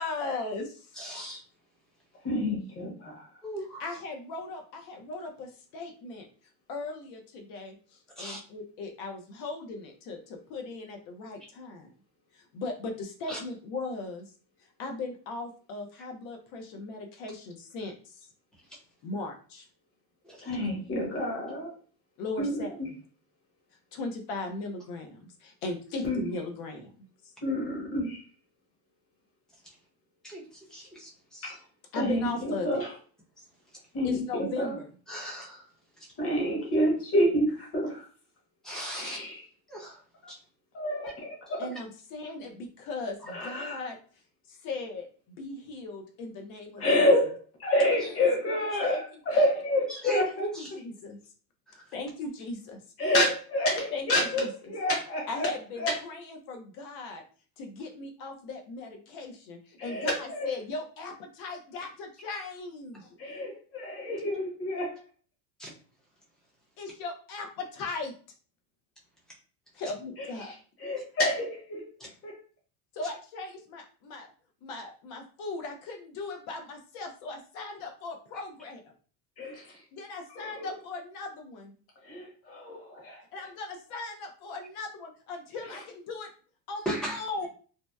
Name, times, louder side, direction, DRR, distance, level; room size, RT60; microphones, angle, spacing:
voice 1, 0.0-0.9 3.8-6.3 6.7-7.8 8.2-11.9 12.3-14.3 14.8-18.3 19.0-19.6 22.2-22.7 23.9-26.9 31.9-32.8 34.0-34.9 41.6-44.0 44.5-47.1 48.8-49.0 49.3-49.4 50.3-51.2 51.9-52.8 53.9-54.5 55.3-57.2 57.6-63.1 66.8-68.1 69.8-70.5 72.9-74.3 74.6-78.9 79.9-81.8 83.3-86.3 86.7-87.5, left 3 dB, 50° left, 4 dB, 0.6 m, -38 dB
voice 2, 1.0-1.4 3.4-3.8 8.2-8.4 13.3-13.4 20.2-20.4 30.2-30.4 30.7-31.6 35.1-35.7 36.0-36.1 38.6-39.2 39.7-40.0 40.3-40.4 41.6-41.7 43.4-43.5 48.0-48.1 48.7-48.8 49.9-50.7 51.7-51.9 62.9-63.1 65.6-65.7 72.0-72.1 86.8-87.2, right 2 dB, ahead, -4 dB, 0.6 m, -37 dB
voice 3, 2.2-3.3 20.4-21.7 22.4-22.6 26.0-26.2 27.4-28.2 31.4-31.5 31.9-32.9 33.9-34.8 36.2-38.1 38.9-39.4 40.7-41.7 43.3-43.8 46.8-50.5 53.0-55.5 55.8-55.9 59.8-60.5 63.2-65.0 70.2-70.5 70.8-71.8 72.2-72.3 79.4-79.7 80.3-80.7 82.0-83.2, left 1 dB, 35° left, -1 dB, 1.0 m, -28 dB
2.7 x 2.1 x 2.2 m, 0.41 s
cardioid pair, 145°, 42 cm